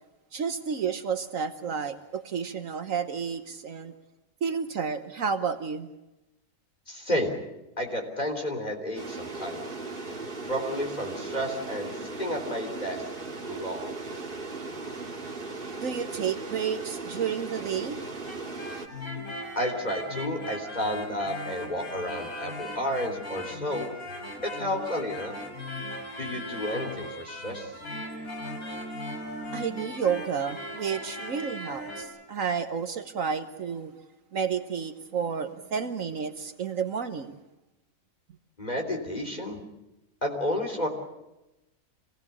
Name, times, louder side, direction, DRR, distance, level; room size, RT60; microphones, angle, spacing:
voice 1, 0.3-3.9 4.4-5.9 15.8-18.0 29.5-34.0 34.3-37.3, right 6 dB, 65° right, 9 dB, 1.4 m, -31 dB
voice 2, 6.9-7.4 7.8-9.6 10.5-13.0 13.5-13.9 19.6-23.9 24.4-25.4 26.2-27.7 38.6-39.6 40.2-40.9, equal, 30° left, 3 dB, 3.7 m, -31 dB
sound 1, 9.0-18.9, right 3 dB, 40° right, 2.1 m, -37 dB
sound 2, 18.1-32.0, left 1 dB, 70° left, 5.1 m, -38 dB
26.5 x 18.0 x 8.4 m, 0.96 s
omnidirectional pair, 1.6 m